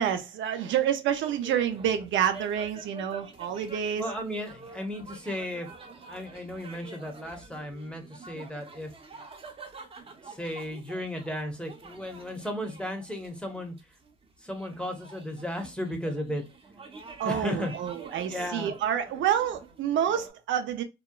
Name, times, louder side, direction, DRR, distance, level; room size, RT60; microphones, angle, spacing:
voice 1, 0.0-4.1 17.2-20.8, right 9 dB, 75° right, 0.5 m, -28 dB
sound 1, 1.1-20.3, right 4 dB, 30° right, 0.7 m, -47 dB
voice 2, 4.0-8.9 10.3-13.8 14.4-16.4 17.2-17.7 18.3-18.7, left 1 dB, 5° left, 0.8 m, -35 dB
2.8 x 2.1 x 2.2 m
cardioid pair, 90°, 20 cm